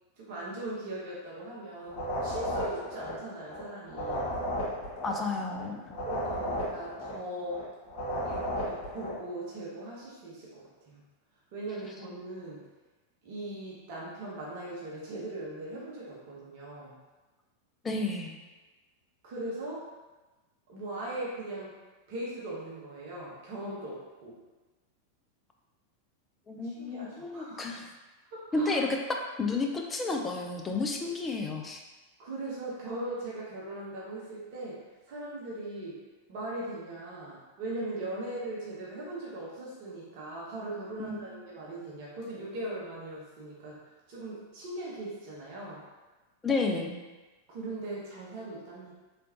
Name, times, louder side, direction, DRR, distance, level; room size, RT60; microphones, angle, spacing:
voice 1, 0.2-4.3 6.0-7.7 8.2-11.0 11.5-12.6 13.2-17.0 19.2-19.9 20.7-21.8 22.1-24.4 26.6-27.8 28.3-28.8 32.2-36.0 36.3-43.8 44.1-45.8 47.5-48.9, right 1 dB, 45° right, -6 dB, 1.0 m, -39 dB
sound 1, 1.9-9.2, equal, 45° left, 1.4 m, -34 dB
voice 2, 5.0-6.0 17.8-18.4 26.5-27.9 28.5-31.8 41.0-41.3 46.4-47.0, left 3 dB, 15° left, 2 dB, 0.5 m, -31 dB
3.7 x 3.4 x 2.8 m, 1.2 s
figure-of-eight pair, 90°, 0 cm